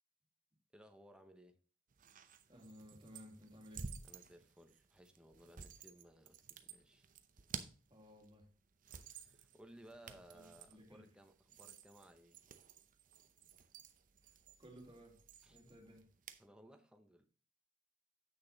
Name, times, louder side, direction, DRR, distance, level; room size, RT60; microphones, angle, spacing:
voice 1, 0.7-1.6 4.0-7.1 9.0-12.4 15.4-15.6 16.4-17.3, right 1 dB, 5° right, 1.0 m, -61 dB
sound 1, 1.9-16.5, right 6 dB, 45° right, 0.7 m, -54 dB
voice 2, 2.5-3.9 7.9-8.5 10.0-11.1 14.2-14.3 14.6-15.2 15.5-16.1, equal, 30° right, 2.3 m, -58 dB
8.3 x 6.4 x 4.0 m
head